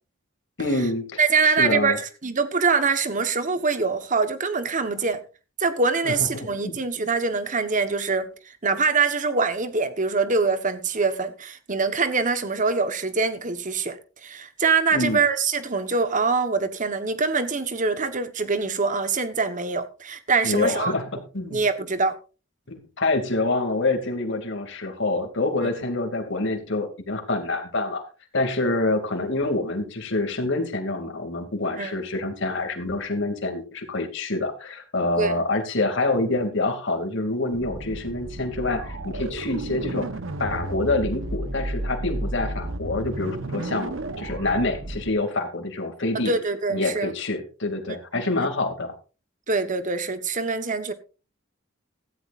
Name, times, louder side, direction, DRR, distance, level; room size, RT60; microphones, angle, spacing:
voice 1, 0.6-2.0 6.0-6.8 14.9-15.2 20.4-21.6 22.7-28.0 28.3-40.1 40.4-46.3 46.7-48.9, left 2 dB, 60° left, 2.7 m, -26 dB
voice 2, 1.2-5.2 5.6-8.3 8.6-20.9 21.5-22.1 25.6-25.7 31.8-31.9 35.2-35.4 46.1-47.1 47.9-48.0 48.4-48.5 49.5-50.9, right 4 dB, 40° right, 1.3 m, -24 dB
sound 1, 37.5-45.1, right 2 dB, 65° right, 1.1 m, -32 dB
16.0 x 14.0 x 2.6 m
head